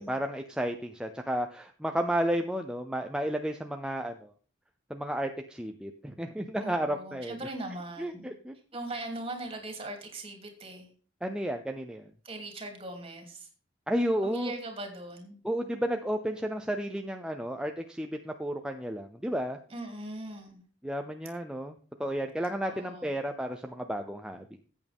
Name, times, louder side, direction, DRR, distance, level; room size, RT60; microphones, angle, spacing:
voice 1, 0.0-4.3 4.9-7.4 8.0-8.5 11.2-12.0 13.9-14.5 15.4-19.6 20.8-24.4, equal, 5° right, 5 dB, 0.6 m, -32 dB
voice 2, 6.6-8.3 8.7-10.9 12.2-13.5 14.2-15.4 19.7-20.6 22.6-23.2, right 2 dB, 30° right, 3 dB, 3.0 m, -40 dB
14.0 x 8.5 x 3.6 m, 0.41 s
head